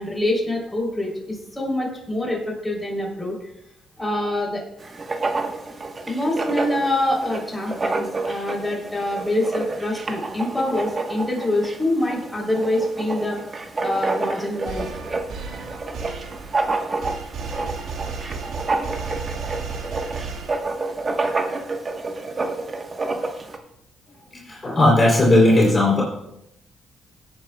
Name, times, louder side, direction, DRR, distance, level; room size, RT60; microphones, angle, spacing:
voice 1, 0.0-3.3 4.0-4.6 6.1-13.4 13.8-14.9, left 1 dB, 5° left, -3 dB, 3.3 m, -25 dB
Writing, 4.8-23.6, right 3 dB, 35° right, 1.2 m, -29 dB
sound 1, 14.7-21.0, right 5 dB, 75° right, 1.7 m, -34 dB
voice 2, 24.5-26.0, left 1 dB, 30° left, -3 dB, 3.3 m, -16 dB
17.0 x 8.9 x 2.3 m, 0.81 s
cardioid pair, 90°, 0 cm